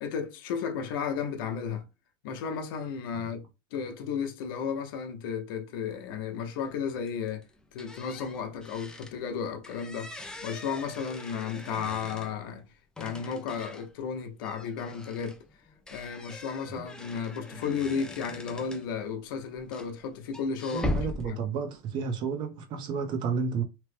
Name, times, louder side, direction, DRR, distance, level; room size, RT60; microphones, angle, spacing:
voice 1, 0.0-1.8 2.2-3.5 3.7-7.4 7.7-10.1 10.4-12.6 13.0-15.4 15.9-20.9 21.3-21.4, left 6 dB, 75° left, 0.7 m, -33 dB
sound 1, 6.6-6.8 7.1-9.2 9.6-12.5 13.0-13.9 14.4-19.0 19.5-21.3, left 1 dB, 5° left, 0.4 m, -40 dB
voice 2, 20.7-23.6, right 5 dB, 40° right, 0.6 m, -31 dB
3.0 x 2.1 x 3.2 m
supercardioid pair, 145°, 11 cm